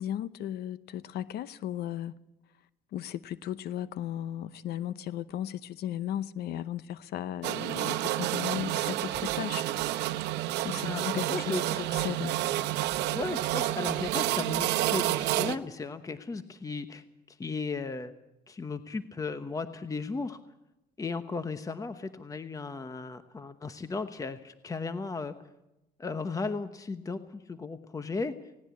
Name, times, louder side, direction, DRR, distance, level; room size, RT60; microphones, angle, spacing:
voice 1, 0.0-2.2 2.9-9.7 10.6-11.6 11.9-12.4, left 11 dB, 70° left, 0.8 m, -35 dB
sound 1, 7.4-15.6, right 15 dB, 85° right, 0.9 m, -30 dB
voice 2, 10.8-11.8 13.1-18.1 18.5-20.4 21.0-25.4 26.0-28.3, left 4 dB, 20° left, 1.0 m, -36 dB
18.5 x 17.5 x 8.4 m
cardioid pair, 110°, 17 cm